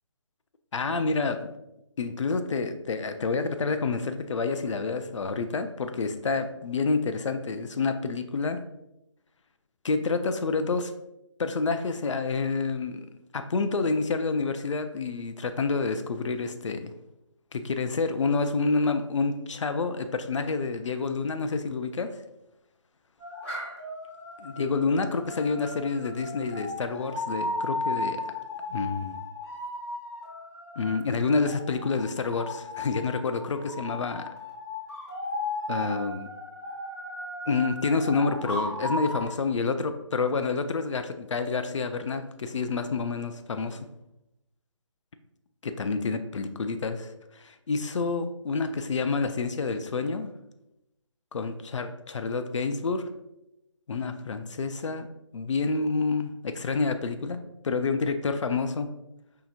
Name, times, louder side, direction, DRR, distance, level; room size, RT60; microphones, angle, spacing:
voice 1, 0.7-1.5 2.0-8.6 9.8-10.9 11.4-13.1 13.3-16.9 17.5-22.2 24.4-28.2 28.7-29.2 30.8-34.3 35.7-36.3 37.5-43.9 45.6-50.3 51.3-53.1 53.9-55.1 55.3-58.9, left 4 dB, 70° left, 8 dB, 0.4 m, -28 dB
sound 1, 23.2-39.3, left 2 dB, 5° left, 1.4 m, -36 dB
5.7 x 2.8 x 2.4 m, 0.88 s
figure-of-eight pair, 160°, 16 cm